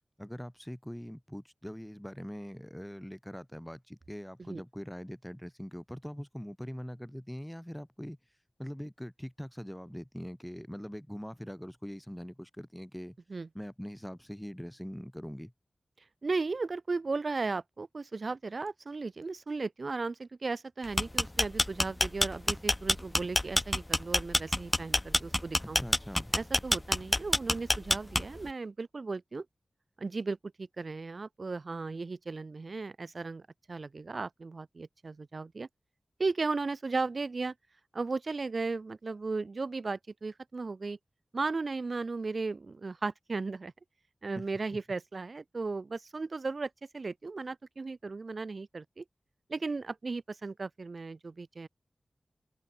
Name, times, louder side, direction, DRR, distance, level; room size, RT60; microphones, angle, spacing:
voice 1, 0.2-8.2 8.6-13.2 13.5-15.5 25.6-26.3 44.4-44.5, equal, 5° left, 2.2 m, -42 dB
voice 2, 16.2-25.8 26.3-29.5 30.0-33.4 33.7-35.7 36.2-37.5 37.9-41.0 41.3-43.7 44.2-49.0 49.5-51.7, right 3 dB, 65° right, 0.9 m, -36 dB
sound 1, 20.8-28.5, left 1 dB, 25° left, 0.4 m, -27 dB
open air
cardioid pair, 50°, 0 cm